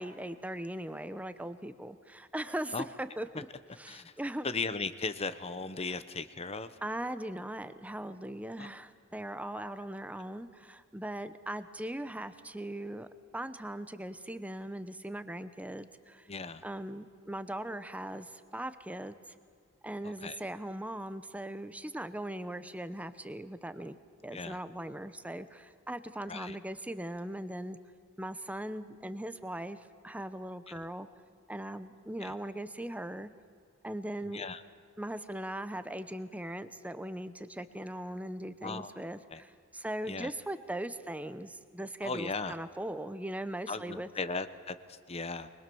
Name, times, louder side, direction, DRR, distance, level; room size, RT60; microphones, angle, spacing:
voice 1, 0.0-3.5 3.8-4.5 6.8-13.1 13.3-16.3 16.6-19.2 19.8-24.0 24.2-27.8 28.2-31.1 31.5-33.3 33.8-34.5 35.0-44.1, right 1 dB, 5° right, 12 dB, 0.8 m, -39 dB
voice 2, 3.9-4.2 4.4-6.8 8.6-8.7 16.3-16.6 20.0-20.4 24.3-24.6 26.3-26.6 30.7-30.9 32.2-32.3 34.2-34.6 38.6-39.0 39.3-39.4 40.1-40.3 42.0-42.6 43.7-45.5, left 4 dB, 30° left, 12 dB, 0.8 m, -37 dB
24.0 x 21.5 x 7.0 m, 2.2 s
head